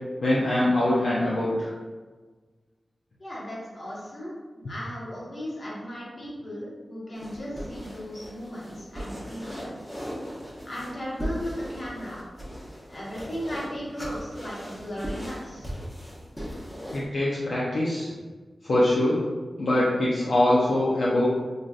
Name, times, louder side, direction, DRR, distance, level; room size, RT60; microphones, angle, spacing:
voice 1, 0.2-1.7 16.9-18.1 18.6-19.2 19.6-21.2, left 1 dB, 80° left, -7 dB, 0.5 m, -23 dB
voice 2, 3.2-4.3 4.7-9.7 10.6-12.2 12.9-15.7, equal, 55° left, -6 dB, 1.1 m, -36 dB
sound 1, 7.2-17.1, equal, 10° left, 0.8 m, -38 dB
3.4 x 2.5 x 2.4 m, 1.4 s
cardioid pair, 60°, 0 cm